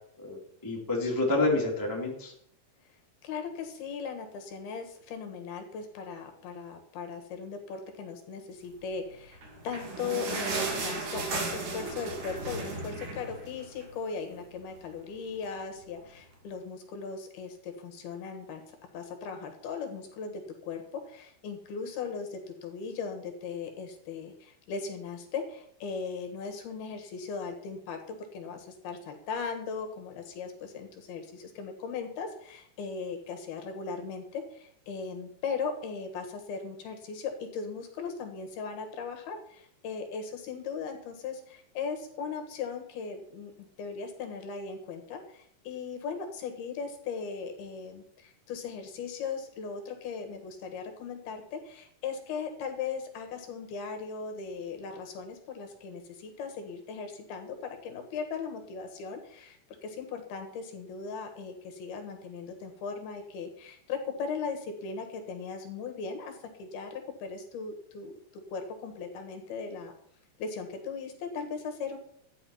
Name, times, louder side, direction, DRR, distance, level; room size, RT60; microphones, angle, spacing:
voice 1, 0.2-2.3, left 2 dB, 10° left, -2 dB, 1.5 m, -28 dB
voice 2, 3.2-9.4 9.6-68.1 68.5-69.9 70.4-72.0, left 5 dB, 75° left, 4 dB, 3.4 m, -38 dB
sound 1, 9.3-14.0 14.4-14.5 14.8-14.9 15.6-15.7, right 3 dB, 55° right, 3.7 m, -35 dB
13.0 x 9.2 x 5.6 m, 0.67 s
omnidirectional pair, 4.6 m